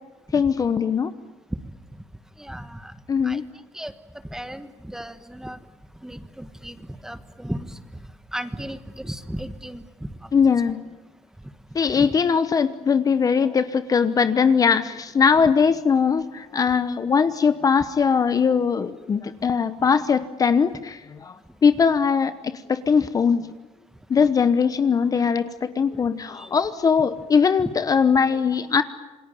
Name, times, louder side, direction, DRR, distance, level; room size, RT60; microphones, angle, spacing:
voice 1, 0.3-1.1 3.1-3.4 10.3-10.8 11.7-21.3 21.6-23.4 24.1-28.8, left 6 dB, 30° left, 12 dB, 1.0 m, -20 dB
voice 2, 2.4-2.9 3.2-3.4 3.7-3.9 4.3-5.6 6.0-9.8 10.6-10.7 11.9-12.1 26.3-26.5 27.6-27.7, right 1 dB, 5° right, 11 dB, 1.4 m, -35 dB
28.0 x 21.0 x 9.1 m, 1.1 s
cardioid pair, 120°, 12 cm